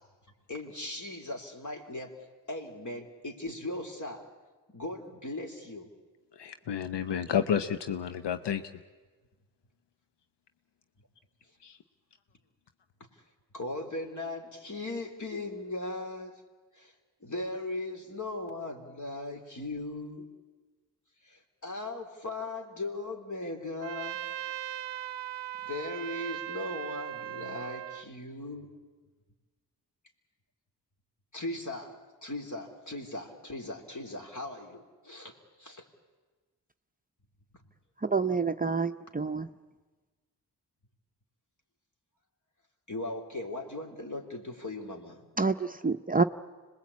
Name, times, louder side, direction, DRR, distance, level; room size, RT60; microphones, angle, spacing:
voice 1, 0.5-2.1 2.5-4.3 4.7-5.9 7.0-7.2 13.5-16.4 16.7-16.9 17.2-20.3 21.2-24.2 25.6-28.7 31.3-31.9 32.2-35.8 42.9-45.2, left 2 dB, 45° left, 3 dB, 3.7 m, -38 dB
voice 2, 6.3-8.6 11.6-11.8, left 8 dB, 80° left, 9 dB, 0.8 m, -30 dB
Trumpet, 23.8-28.1, right 12 dB, 85° right, 0.7 m, -38 dB
voice 3, 38.0-39.5 45.4-46.2, right 4 dB, 20° right, 8 dB, 0.7 m, -28 dB
26.0 x 20.5 x 8.5 m, 1.3 s
cardioid pair, 45°, 41 cm